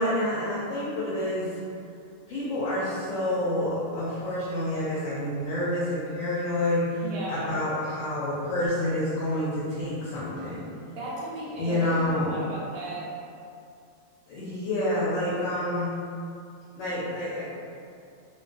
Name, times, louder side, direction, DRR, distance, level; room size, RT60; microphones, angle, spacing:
voice 1, 0.0-1.5 2.3-10.7 11.6-12.4 14.3-15.9 16.8-17.5, left 1 dB, 85° left, -9 dB, 1.0 m, -28 dB
voice 2, 7.0-7.5 10.9-13.1, right 2 dB, 55° right, -7 dB, 0.7 m, -36 dB
2.3 x 2.3 x 2.4 m, 2.4 s
omnidirectional pair, 1.3 m